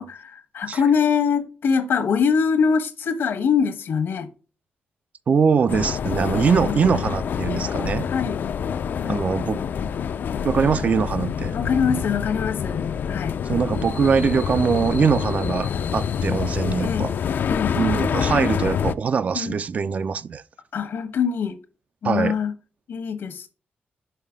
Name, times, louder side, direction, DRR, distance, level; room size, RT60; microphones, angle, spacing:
voice 1, 0.0-4.3 6.6-6.8 8.1-8.4 9.0-9.2 11.5-13.4 16.3-16.4 16.8-17.1 17.5-17.8 19.3-19.6 20.7-21.6 22.0-22.5 22.9-23.5, left 6 dB, 85° left, 1.1 m, -23 dB
voice 2, 5.3-8.1 9.1-9.6 10.4-11.6 13.5-17.1 17.8-20.4 22.0-22.3, right 6 dB, 40° right, 0.3 m, -22 dB
sound 1, 5.7-18.9, left 7 dB, 60° left, 0.3 m, -26 dB
5.6 x 5.4 x 3.6 m
wide cardioid pair, 160°, 4 cm